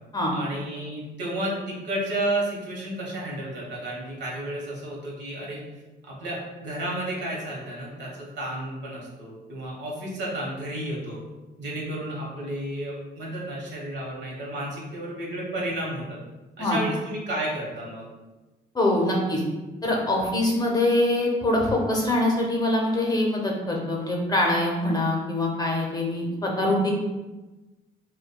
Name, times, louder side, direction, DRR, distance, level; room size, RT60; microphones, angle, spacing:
voice 1, 0.3-5.6 6.0-11.2 11.6-16.2 16.6-18.1, right 1 dB, 60° right, -4 dB, 1.2 m, -32 dB
voice 2, 18.7-19.4 19.8-26.9, left 1 dB, 20° left, -1 dB, 0.7 m, -24 dB
4.8 x 2.2 x 2.2 m, 1.1 s
cardioid pair, 90°, 20 cm